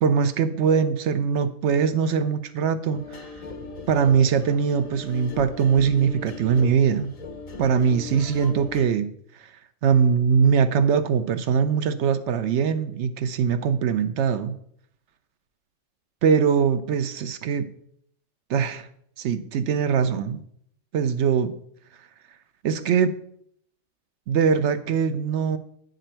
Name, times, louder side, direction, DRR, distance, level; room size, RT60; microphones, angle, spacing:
voice 1, 0.0-3.2 3.9-7.1 7.6-9.1 9.4-9.5 9.8-14.5 16.2-17.7 18.5-18.9 19.2-20.4 20.9-21.5 22.6-23.2 24.3-25.6, right 6 dB, 70° right, 11 dB, 0.8 m, -22 dB
sound 1, 2.9-8.9, left 3 dB, 40° left, 0.5 m, -38 dB
8.6 x 5.1 x 4.3 m, 0.68 s
omnidirectional pair, 1.4 m